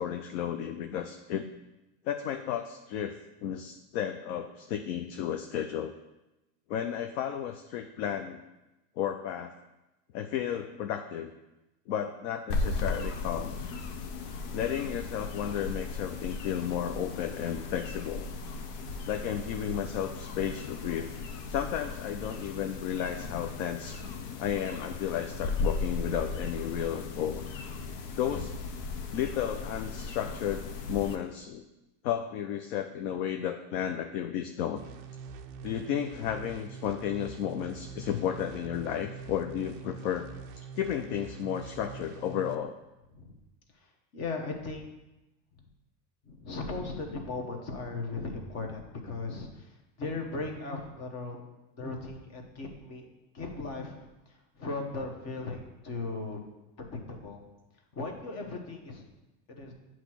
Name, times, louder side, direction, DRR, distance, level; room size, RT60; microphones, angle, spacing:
voice 1, 0.0-1.5 2.0-3.1 3.4-5.9 6.7-8.4 9.0-9.5 10.1-11.3 11.9-13.6 14.5-18.3 19.1-21.1 21.5-24.0 24.4-27.5 28.2-28.5 29.1-31.6 32.0-34.8 35.6-40.3 40.6-42.8, left 9 dB, 50° left, 6 dB, 0.4 m, -33 dB
sound 1, 12.5-31.2, left 3 dB, 70° left, 0.9 m, -36 dB
sound 2, 34.8-42.5, right 6 dB, 35° right, 0.4 m, -44 dB
voice 2, 43.7-44.9 45.6-45.7 46.2-51.4 51.7-53.1 53.3-56.4 56.8-57.4 57.9-59.0 59.5-59.7, left 3 dB, 30° left, 3 dB, 1.1 m, -38 dB
8.1 x 3.0 x 6.0 m, 1.0 s
supercardioid pair, 140°, 49 cm